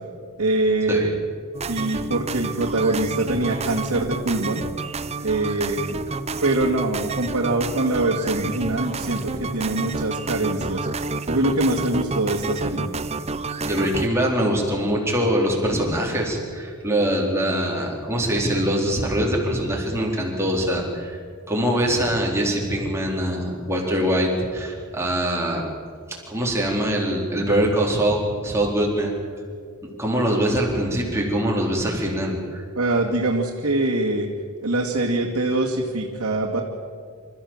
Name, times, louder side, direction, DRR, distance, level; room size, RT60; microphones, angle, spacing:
voice 1, 0.4-1.1 1.7-4.6 5.2-6.0 6.4-10.9 11.2-12.9 32.7-34.3 34.6-36.6, right 2 dB, 65° right, -3 dB, 2.3 m, -23 dB
sound 1, 1.5-14.1, right 3 dB, 30° right, 0.7 m, -30 dB
voice 2, 13.6-21.2 21.5-25.7 26.1-29.2 30.0-32.6, equal, 10° right, -2 dB, 4.1 m, -23 dB
27.5 x 14.5 x 7.5 m, 2.1 s
head